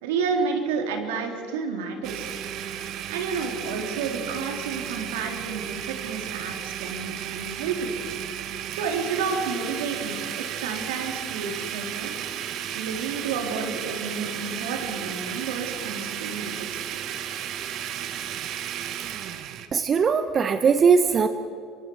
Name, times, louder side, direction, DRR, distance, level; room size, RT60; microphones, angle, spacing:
voice 1, 0.0-2.3 3.1-7.9 8.7-12.1 12.7-16.8, right 5 dB, 75° right, 3 dB, 3.3 m, -30 dB
Domestic sounds home sounds, 2.0-19.7, right 10 dB, 55° right, 1.5 m, -34 dB
voice 2, 19.7-21.3, right 6 dB, 40° right, 10 dB, 1.0 m, -20 dB
26.0 x 24.5 x 4.7 m, 2.6 s
hypercardioid pair, 65°, 0 cm